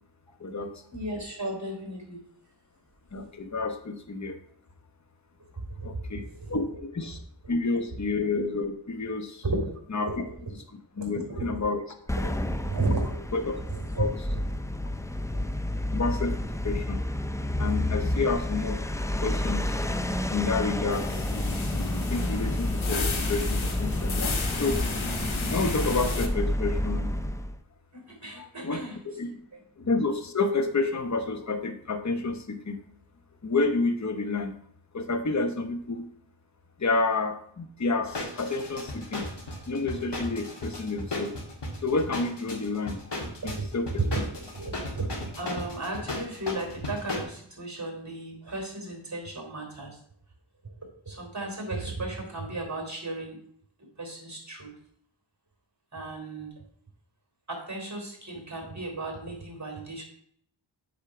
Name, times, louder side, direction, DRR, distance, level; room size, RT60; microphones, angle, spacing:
voice 1, 0.4-0.7 3.1-4.4 5.8-6.7 6.9-7.2 7.5-9.4 9.9-10.1 11.0-11.8 13.3-13.6 14.0-14.1 15.9-16.3 16.6-17.0 17.6-18.8 19.2-19.8 20.3-21.2 22.1-24.3 24.6-24.8 25.5-27.1 28.4-28.8 29.2-29.3 29.8-32.8 33.4-34.5 34.9-36.1 36.8-39.2 39.7-41.3 41.8-43.0 43.4-43.9, left 3 dB, 35° left, 7 dB, 0.9 m, -29 dB
voice 2, 0.9-2.2 5.6-6.8 7.4-7.5 9.4-10.2 11.0-11.7 12.1-13.2 13.6-14.0 15.3-15.4 21.7-22.0 27.9-29.0 29.5-29.6 43.4-43.6 44.0-50.0 50.6-50.7 51.0-53.4 54.0-54.7 55.9-56.5 57.5-60.0, right 2 dB, 35° right, 1 dB, 3.4 m, -34 dB
sound 1, 12.1-27.6, left 1 dB, 5° left, 0.3 m, -30 dB
sound 2, 20.9-26.3, left 4 dB, 85° left, 1.1 m, -34 dB
sound 3, 38.1-47.2, left 2 dB, 60° left, 1.8 m, -36 dB
8.3 x 3.7 x 5.9 m, 0.64 s
wide cardioid pair, 60°, 46 cm